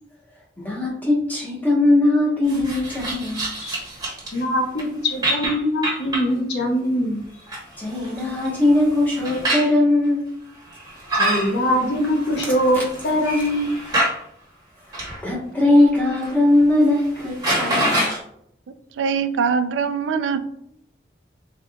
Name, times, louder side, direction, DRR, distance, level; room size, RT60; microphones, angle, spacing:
voice 1, 0.6-3.5 7.8-10.3 12.7-12.8 15.2-18.1, left 2 dB, 10° left, -4 dB, 0.9 m, -19 dB
sound 1, 2.5-4.4 4.8-4.9 5.2-6.3 7.2-9.8 10.7-14.2 14.9-15.2 15.7-16.3 16.6-16.7 17.0-18.2, right 1 dB, 20° right, 0.9 m, -26 dB
voice 2, 4.3-7.2 11.1-13.8, equal, 70° left, 1 dB, 0.8 m, -22 dB
voice 3, 18.9-20.4, right 6 dB, 85° right, 11 dB, 0.3 m, -22 dB
3.8 x 3.5 x 2.2 m, 0.73 s
head